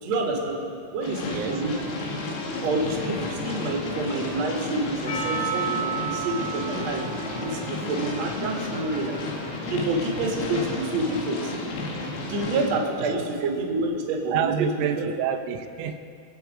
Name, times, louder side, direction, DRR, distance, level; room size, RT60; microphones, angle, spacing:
voice 1, 0.0-0.6 0.9-1.7 2.5-7.1 7.4-11.5 12.3-14.5 15.0-15.1, right 2 dB, 50° right, -1 dB, 2.3 m, -28 dB
sound 1, 1.0-12.7, left 2 dB, 80° left, 4.3 m, -32 dB
voice 2, 1.3-1.6 13.0-13.1 13.4-13.5 14.3-16.0, right 8 dB, 90° right, 6 dB, 3.3 m, -28 dB
Percussion, 5.1-10.0, right 6 dB, 55° left, 2.0 m, -34 dB
24.0 x 8.2 x 4.9 m, 2.4 s
omnidirectional pair, 5.6 m